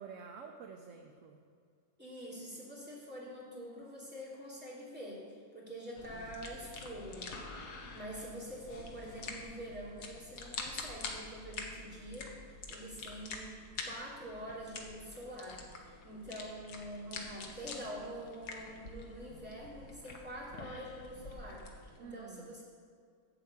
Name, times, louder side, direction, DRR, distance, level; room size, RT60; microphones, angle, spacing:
voice 1, 0.0-1.4 6.1-6.3 7.8-8.0 17.1-17.6 22.0-22.6, right 6 dB, 65° right, 4 dB, 0.9 m, -50 dB
voice 2, 2.0-12.3 12.7-13.5 13.8-22.6, equal, 5° right, -7 dB, 2.8 m, -46 dB
sound 1, 6.0-22.0, left 3 dB, 80° left, 1.6 m, -47 dB
11.0 x 4.7 x 8.1 m, 2.2 s
omnidirectional pair, 1.7 m